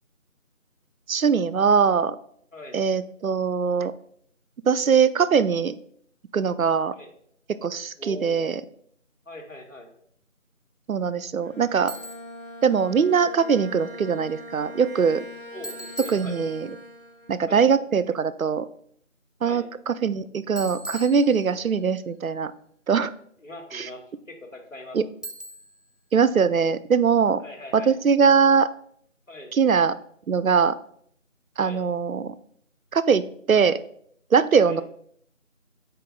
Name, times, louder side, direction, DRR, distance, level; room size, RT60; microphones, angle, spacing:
voice 1, 1.1-2.2 2.7-3.9 4.6-5.8 6.3-6.9 7.5-8.6 10.9-11.9 12.6-15.2 16.1-16.7 17.3-18.7 19.4-22.5 22.9-23.1 23.7-23.9 24.9-25.0 26.1-27.4 27.7-28.7 29.5-29.9 30.3-30.7 31.6-32.3 32.9-33.2 33.5-33.8 34.3-34.8, right 6 dB, 90° right, 15 dB, 0.6 m, -21 dB
voice 2, 8.0-8.5 9.2-9.9 15.5-16.4 17.5-17.7 19.4-19.7 23.4-25.2 27.4-28.0 29.3-29.5 31.6-31.8 34.6-34.8, left 1 dB, 70° left, 2 dB, 1.6 m, -41 dB
Bowed string instrument, 11.4-17.5, left 1 dB, 40° right, 0.6 m, -42 dB
Bicycle, 11.9-12.4 15.6-16.9 20.6-21.8 25.2-25.9, right 1 dB, ahead, 0.4 m, -40 dB
4.9 x 4.5 x 4.8 m, 0.66 s
figure-of-eight pair, 175°, 40 cm